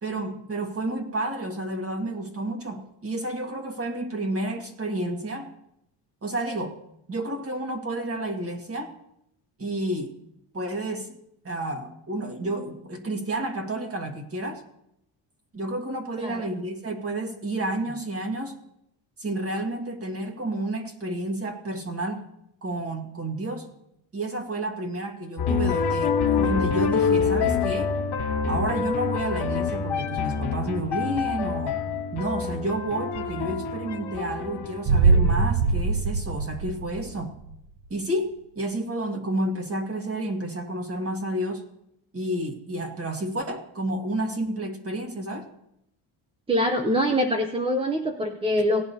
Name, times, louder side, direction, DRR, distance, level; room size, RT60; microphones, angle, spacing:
voice 1, 0.0-5.5 6.2-6.8 7.1-8.9 9.6-10.1 10.5-11.2 11.4-14.6 15.5-18.5 19.2-22.2 22.6-23.7 24.1-27.9 28.4-31.8 32.1-37.3 37.9-41.6 42.1-45.5, right 1 dB, 30° right, 4 dB, 1.7 m, -30 dB
sound 1, 25.4-35.6, left 6 dB, 55° left, 1.7 m, -26 dB
sound 2, 34.8-37.5 37.8-37.9, right 4 dB, 55° right, 0.7 m, -22 dB
voice 2, 46.5-48.8, equal, 10° right, 5 dB, 0.5 m, -24 dB
17.5 x 10.5 x 2.7 m, 0.78 s
cardioid pair, 125°, 49 cm